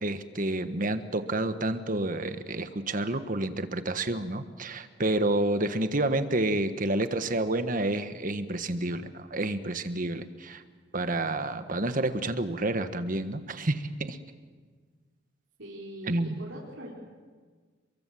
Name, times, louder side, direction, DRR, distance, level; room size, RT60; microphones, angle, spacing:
voice 1, 0.0-10.6 10.9-14.2 16.1-16.4, right 2 dB, 45° right, 10 dB, 1.5 m, -29 dB
voice 2, 15.6-16.9, right 1 dB, 70° right, -5 dB, 4.7 m, -42 dB
29.5 x 23.0 x 7.8 m, 1.5 s
head